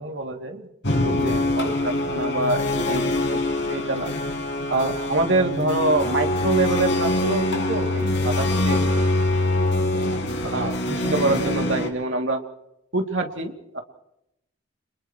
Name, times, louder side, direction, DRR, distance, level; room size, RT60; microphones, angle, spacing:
voice 1, 0.0-3.4 3.7-4.1 4.7-8.8 10.4-12.4 12.9-13.8, right 2 dB, 75° right, 3 dB, 2.7 m, -26 dB
sound 1, 0.8-11.9, left 1 dB, 65° left, 4.1 m, -24 dB
30.0 x 27.5 x 3.1 m, 0.83 s
head